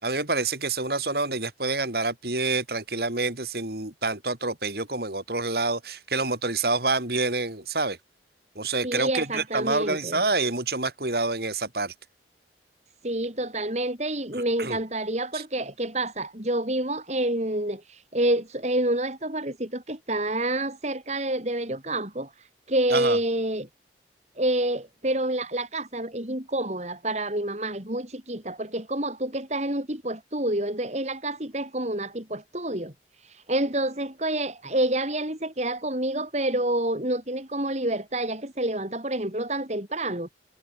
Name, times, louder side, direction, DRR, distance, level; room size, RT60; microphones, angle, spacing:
voice 1, 0.0-8.0 8.6-11.9 14.3-14.8 15.3-15.4 22.9-23.2, right 3 dB, 60° right, 5.2 m, -27 dB
voice 2, 8.8-10.2 13.0-22.3 22.7-23.7 24.4-32.9 33.3-40.3, right 1 dB, 40° right, 4.0 m, -28 dB
head